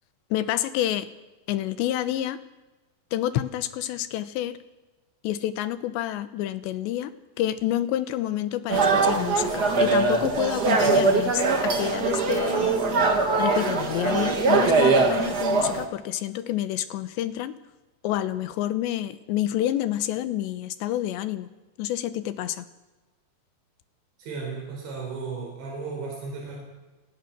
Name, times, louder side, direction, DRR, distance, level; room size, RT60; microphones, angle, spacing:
voice 1, 0.3-1.1 1.5-2.4 3.1-4.6 5.2-12.8 13.4-17.6 18.0-21.5 21.8-22.7, left 13 dB, 85° left, 12 dB, 3.3 m, -28 dB
sound 1, 8.7-15.8, right 3 dB, 55° right, 1.1 m, -22 dB
voice 2, 24.2-26.5, right 4 dB, 90° right, -1 dB, 6.8 m, -34 dB
27.5 x 19.5 x 6.1 m, 1.1 s
omnidirectional pair, 5.0 m